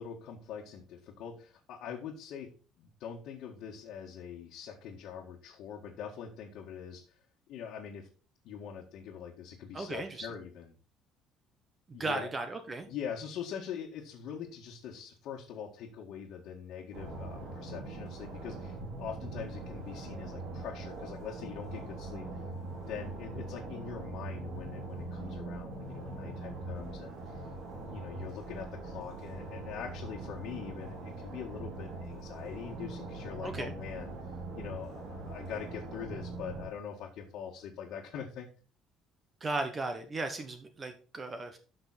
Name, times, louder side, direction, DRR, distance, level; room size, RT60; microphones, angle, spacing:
voice 1, 0.0-2.5 2.8-7.0 7.5-8.1 8.4-10.7 11.9-12.3 12.9-22.3 22.9-27.4 27.9-34.1 34.5-38.5, left 7 dB, 60° left, -2 dB, 1.8 m, -43 dB
voice 2, 9.7-10.3 11.9-12.9 33.4-33.8 39.4-41.6, right 3 dB, 20° right, 7 dB, 1.0 m, -36 dB
sound 1, 16.9-36.7, right 2 dB, 70° right, 4.1 m, -42 dB
12.5 x 6.0 x 4.2 m, 0.36 s
cardioid pair, 175°, 0 cm